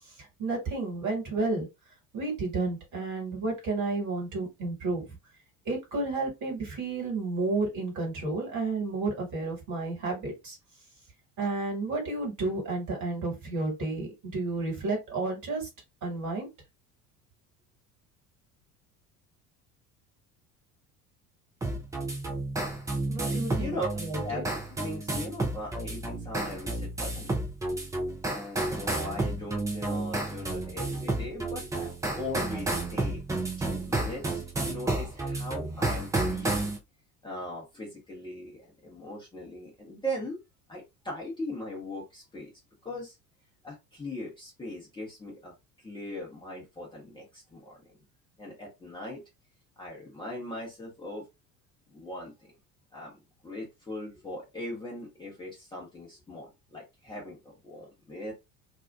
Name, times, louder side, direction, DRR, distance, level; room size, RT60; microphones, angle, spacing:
voice 1, 0.4-1.7 2.1-5.0 5.6-10.6 11.4-15.7 16.0-16.5 23.1-24.4, right 3 dB, 40° right, 1 dB, 1.5 m, -31 dB
sound 1, 21.6-36.8, right 2 dB, 10° right, 0.4 m, -31 dB
voice 2, 23.3-23.9 24.2-27.3 28.3-33.2 33.6-36.7 37.2-40.4 40.7-42.5 42.8-43.2 43.6-48.0 48.4-49.2 49.8-51.3 51.9-52.5 52.9-58.3, left 1 dB, 10° left, -4 dB, 0.8 m, -39 dB
2.6 x 2.3 x 2.3 m, 0.23 s
figure-of-eight pair, 65°, 46 cm